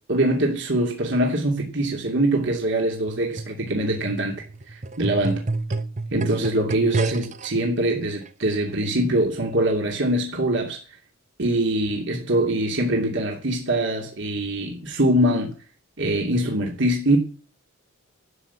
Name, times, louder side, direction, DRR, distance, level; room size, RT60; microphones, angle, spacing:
voice 1, 0.1-5.4 6.1-10.8 11.4-15.5 16.0-17.2, right 1 dB, 60° right, 2.8 m, -23 dB
sound 1, 3.1-7.5 8.3-8.4, right 2 dB, 35° right, 0.8 m, -29 dB
13.0 x 7.8 x 8.3 m
head